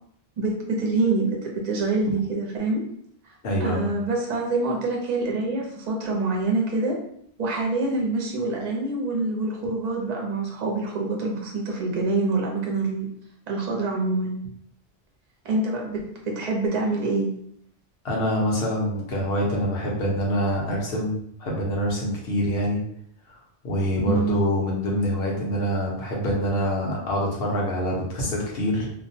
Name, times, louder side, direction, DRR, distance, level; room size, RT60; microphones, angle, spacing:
voice 1, 0.4-2.8 3.6-7.0 7.4-13.1 13.5-14.4 15.4-17.3 24.0-24.4, right 3 dB, 45° right, -1 dB, 0.6 m, -26 dB
voice 2, 3.4-3.9 18.0-22.8 23.3-23.4 23.6-28.9, equal, 70° left, -3 dB, 1.0 m, -25 dB
2.4 x 2.1 x 2.6 m, 0.69 s
omnidirectional pair, 1.1 m